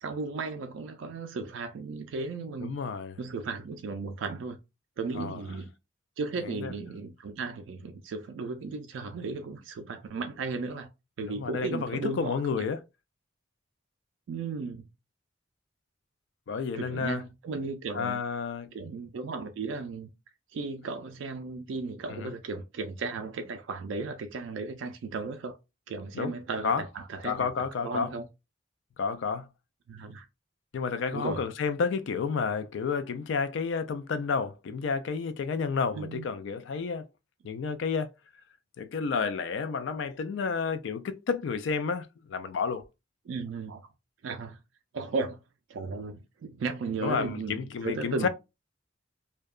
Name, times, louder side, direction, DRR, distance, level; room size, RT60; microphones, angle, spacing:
voice 1, 0.0-2.7 3.2-4.6 5.0-5.7 6.2-10.9 11.2-12.7 14.3-14.8 16.7-18.2 18.7-20.1 20.5-25.6 25.9-27.5 27.8-28.3 29.9-30.3 31.1-31.4 35.9-36.3 43.3-43.9 44.2-44.6 44.9-45.4 45.7-48.3, right 4 dB, 75° right, 0.3 m, -35 dB
voice 2, 2.6-3.2 5.1-5.4 6.4-6.7 11.2-12.8 16.5-17.2 17.9-18.7 22.1-22.3 26.1-26.3 26.6-26.8 27.2-28.1 29.0-29.5 30.7-37.1 37.4-38.1 38.8-42.8 47.0-48.3, left 5 dB, 70° left, 0.3 m, -31 dB
2.7 x 2.2 x 2.3 m
head